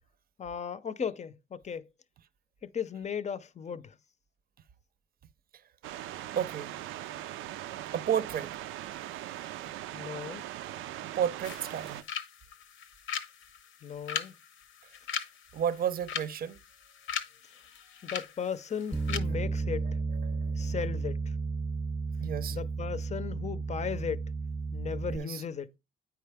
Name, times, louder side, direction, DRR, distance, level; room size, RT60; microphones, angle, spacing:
voice 1, 0.4-1.9 2.6-4.0 9.9-10.5 13.8-14.3 18.0-19.9 20.6-21.4 22.5-24.2 24.7-25.8, left 7 dB, 35° left, 0.6 m, -36 dB
sound 1, 5.8-12.0, right 13 dB, 90° right, 0.4 m, -40 dB
voice 2, 6.4-6.7 7.9-8.6 11.2-12.0 15.5-16.6 20.2-20.7 22.2-22.6 25.1-25.4, right 9 dB, 50° right, 0.6 m, -32 dB
sound 2, 11.4-19.2, left 8 dB, 85° left, 0.9 m, -40 dB
Bass guitar, 18.9-25.2, right 4 dB, 5° right, 0.8 m, -33 dB
9.1 x 4.7 x 3.4 m
cardioid pair, 90°, 20 cm